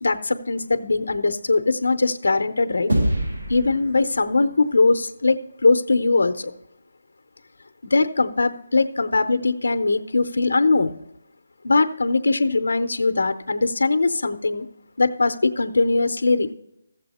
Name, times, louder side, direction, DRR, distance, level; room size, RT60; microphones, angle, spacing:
voice 1, 0.0-2.9 3.5-5.4 5.6-6.5 7.8-10.9 11.6-14.7 15.0-16.5, left 3 dB, 75° left, 8 dB, 0.7 m, -21 dB
sound 1, 2.9-5.5, right 1 dB, 80° right, 4.6 m, -27 dB
14.0 x 7.5 x 4.2 m, 0.86 s
hypercardioid pair, 180°, 0 cm